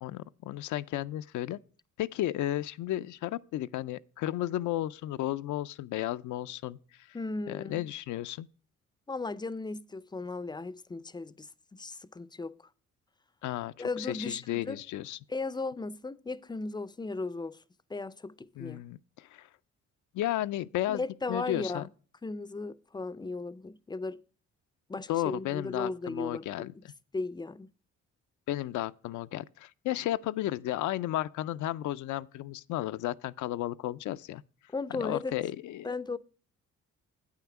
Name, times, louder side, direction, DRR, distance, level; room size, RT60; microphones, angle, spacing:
voice 1, 0.0-1.6 2.0-6.8 7.5-8.5 13.4-15.2 18.6-19.5 20.1-21.0 21.3-21.9 25.1-26.7 28.5-34.4 35.0-36.2, left 14 dB, 75° left, 0.5 m, -33 dB
voice 2, 7.1-7.8 9.1-12.5 13.8-14.8 15.3-17.6 17.9-18.8 20.9-21.9 22.2-24.2 24.9-26.8 27.1-27.7 34.7-35.4 35.8-36.2, left 3 dB, 15° left, 0.4 m, -36 dB
8.6 x 5.8 x 5.9 m
cardioid pair, 90°, 30 cm